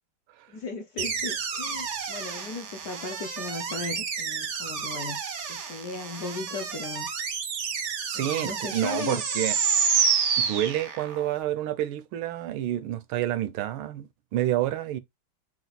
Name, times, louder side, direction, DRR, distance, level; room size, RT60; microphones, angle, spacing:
voice 1, 0.5-5.2 5.5-7.1 8.1-9.2, left 4 dB, 65° left, 1.0 m, -36 dB
sound 1, 1.0-11.3, right 6 dB, 65° right, 0.7 m, -29 dB
voice 2, 8.0-9.6 10.4-15.0, right 13 dB, 90° right, 1.4 m, -29 dB
4.4 x 2.4 x 3.9 m
omnidirectional pair, 2.2 m